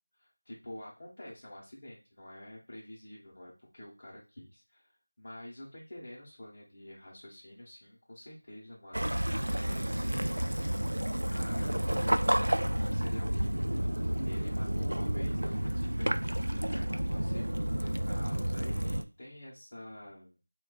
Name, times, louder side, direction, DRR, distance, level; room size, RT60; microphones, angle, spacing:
voice 1, 0.2-12.4 12.8-13.6 14.2-16.2 16.7-20.4, left 1 dB, 30° left, -6 dB, 0.7 m, -48 dB
Waves surf / Splash splatter / Trickle dribble, 8.9-19.0, right 1 dB, 80° right, 0.4 m, -30 dB
2.4 x 2.2 x 3.8 m, 0.33 s
figure-of-eight pair, 175°, 0 cm